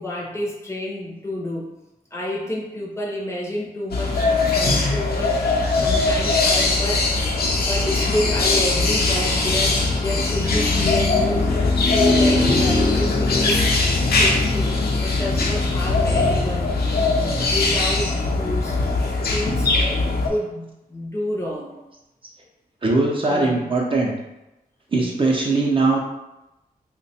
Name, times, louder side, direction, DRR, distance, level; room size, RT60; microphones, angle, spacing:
voice 1, 0.0-1.7 2.1-11.5 11.8-18.7 19.2-21.7 23.3-23.8, left 1 dB, 15° left, -4 dB, 0.6 m, -29 dB
sound 1, 3.9-20.3, left 3 dB, 80° left, 0.7 m, -20 dB
voice 2, 22.8-24.1 24.9-26.0, right 3 dB, 35° right, -3 dB, 0.6 m, -20 dB
3.0 x 2.2 x 4.1 m, 0.94 s
wide cardioid pair, 160°, 16 cm